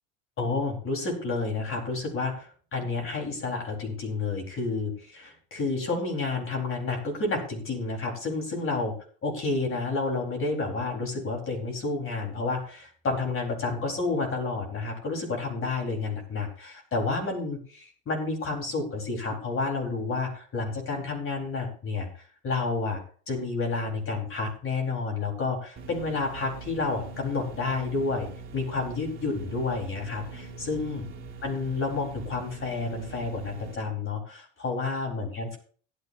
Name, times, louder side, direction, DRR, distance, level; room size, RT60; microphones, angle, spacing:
voice 1, 0.4-8.9 9.2-23.0 23.3-28.3 28.5-31.0 31.4-35.6, left 3 dB, 35° left, 1 dB, 4.2 m, -30 dB
sound 1, 25.8-33.8, right 4 dB, 30° right, 2.7 m, -42 dB
16.5 x 9.8 x 2.7 m, 0.43 s
supercardioid pair, 95°, 34 cm